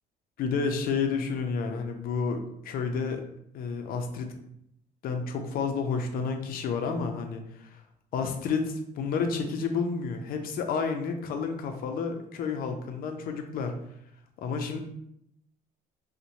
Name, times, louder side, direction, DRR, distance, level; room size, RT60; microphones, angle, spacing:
voice 1, 0.4-3.2 3.5-4.3 5.0-7.4 8.1-13.7 14.4-14.8, left 5 dB, 60° left, 5 dB, 0.4 m, -30 dB
2.6 x 2.1 x 2.9 m, 0.76 s
cardioid pair, 110°, 17 cm